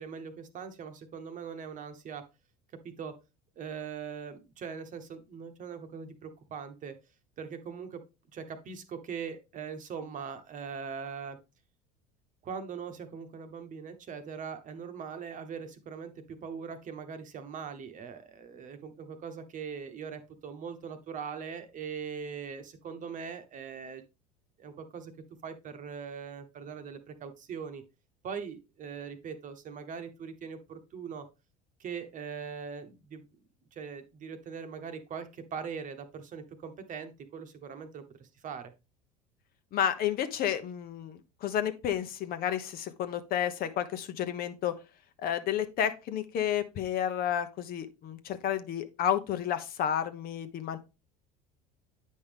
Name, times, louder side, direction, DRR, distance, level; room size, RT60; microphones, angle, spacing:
voice 1, 0.0-2.2 3.0-3.1 3.6-6.9 7.4-8.0 8.3-11.4 12.4-24.0 24.6-25.1 25.4-27.8 28.2-31.3 31.8-33.2 33.7-38.7, right 6 dB, 40° right, 8 dB, 1.1 m, -41 dB
voice 2, 39.7-44.7 45.2-50.8, left 10 dB, 50° left, 10 dB, 0.9 m, -31 dB
8.2 x 5.3 x 3.5 m, 0.28 s
hypercardioid pair, 85°, 20 cm